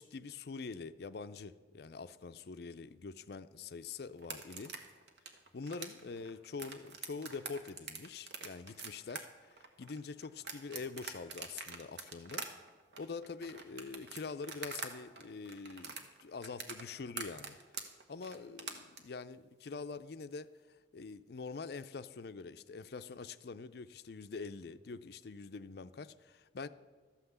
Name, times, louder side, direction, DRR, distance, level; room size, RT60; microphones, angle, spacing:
voice 1, 0.0-4.7 5.5-12.5 13.0-17.6 18.1-20.5 20.9-26.7, left 4 dB, 55° left, 0.4 m, -45 dB
sound 1, 4.2-14.9 15.2-19.0, right 5 dB, 65° right, 1.3 m, -44 dB
13.5 x 5.7 x 8.1 m
head